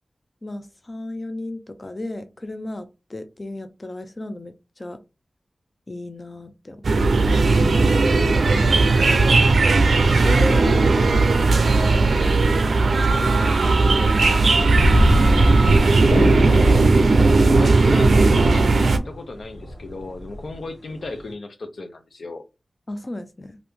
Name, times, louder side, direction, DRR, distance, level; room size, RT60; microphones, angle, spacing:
voice 1, 0.4-5.0 5.9-7.0 10.2-11.5 15.8-16.1 22.9-23.6, left 1 dB, 35° left, 0.5 m, -34 dB
sound 1, 6.8-19.0, right 3 dB, 85° right, 0.4 m, -17 dB
voice 2, 9.1-10.2 12.9-15.5 17.5-22.4, left 2 dB, 80° left, 0.6 m, -35 dB
sound 2, 14.5-21.3, left 1 dB, 60° left, 1.7 m, -25 dB
2.8 x 2.5 x 3.4 m
cardioid pair, 50°, 0 cm